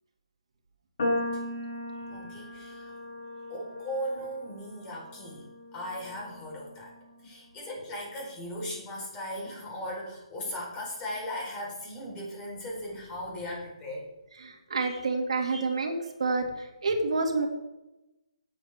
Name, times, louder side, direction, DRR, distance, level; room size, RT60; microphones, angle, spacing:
sound 1, 1.0-7.3, left 1 dB, 55° left, 3.6 m, -37 dB
voice 1, 2.1-2.9 3.5-5.4 5.7-6.9 7.2-14.1 14.7-15.0 15.5-15.6, equal, 20° left, -3 dB, 4.5 m, -38 dB
voice 2, 14.4-17.5, right 3 dB, 70° right, 1 dB, 2.5 m, -28 dB
16.5 x 7.9 x 3.6 m, 0.97 s
hypercardioid pair, 150°, 3 cm